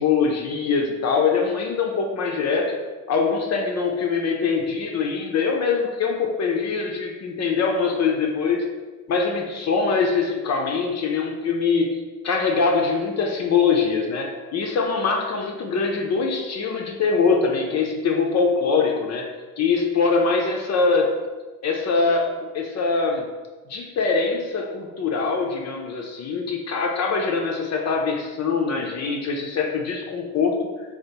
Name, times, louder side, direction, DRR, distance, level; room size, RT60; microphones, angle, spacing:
voice 1, 0.0-2.8 3.1-8.6 9.1-12.0 12.2-19.3 19.6-21.1 21.6-23.3 23.7-30.7, left 4 dB, 40° left, 1 dB, 0.5 m, -23 dB
3.4 x 2.2 x 2.8 m, 1.3 s
hypercardioid pair, 55°, 44 cm